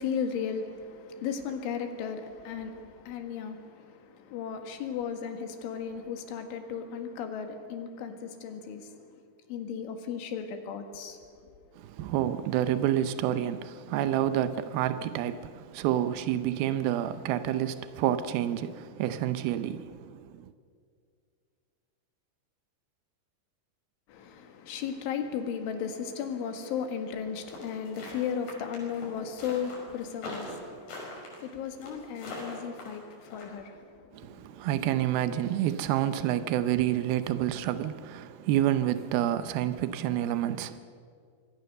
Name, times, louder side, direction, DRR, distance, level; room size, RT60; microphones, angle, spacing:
voice 1, 0.0-9.2 9.5-11.5 24.1-34.9, left 7 dB, 90° left, 4.3 m, -36 dB
voice 2, 11.8-20.5 34.1-40.8, right 12 dB, 85° right, 2.1 m, -29 dB
sound 1, 27.5-33.4, left 2 dB, 60° left, 7.7 m, -42 dB
26.0 x 22.0 x 6.7 m
omnidirectional pair, 5.3 m